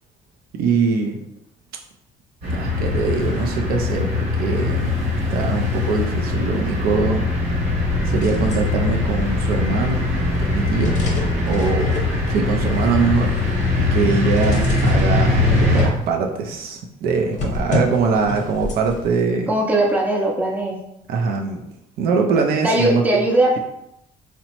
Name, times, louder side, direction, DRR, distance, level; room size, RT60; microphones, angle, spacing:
voice 1, 0.5-1.2 2.5-5.0 5.3-7.3 8.0-10.1 10.4-11.0 11.5-11.9 12.3-13.3 13.9-19.5 21.1-21.7 22.0-23.0, right 5 dB, 65° right, 2 dB, 0.4 m, -22 dB
sound 1, 2.4-15.9, left 2 dB, 45° right, 1.1 m, -21 dB
sound 2, 7.9-16.6 17.3-19.2, left 2 dB, 45° left, 0.7 m, -30 dB
voice 2, 19.5-20.8 22.6-23.6, right 1 dB, 10° right, -1 dB, 0.5 m, -19 dB
2.8 x 2.1 x 2.8 m, 0.81 s
cardioid pair, 110°, 17 cm